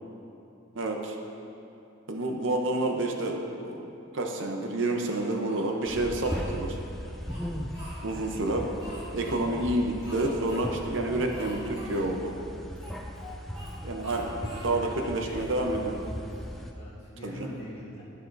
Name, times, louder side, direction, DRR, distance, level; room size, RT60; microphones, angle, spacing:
voice 1, 0.7-1.2 2.1-3.4 3.6-6.8 8.0-8.7 9.1-12.3 13.8-15.9 17.2-17.5, right 2 dB, 60° right, 2 dB, 0.7 m, -29 dB
Speech, 5.1-6.5 7.0-8.3 8.8-9.4 10.0-10.6 10.9-11.0 11.3-12.0 12.7-13.7 14.0-14.7 15.2-16.6, equal, 25° right, 2.0 m, -47 dB
sound 1, 5.9-16.7, equal, ahead, 0.4 m, -38 dB
voice 2, 14.7-15.5 16.7-18.0, equal, 30° left, -8 dB, 1.9 m, -43 dB
11.0 x 9.9 x 2.6 m, 2.7 s
head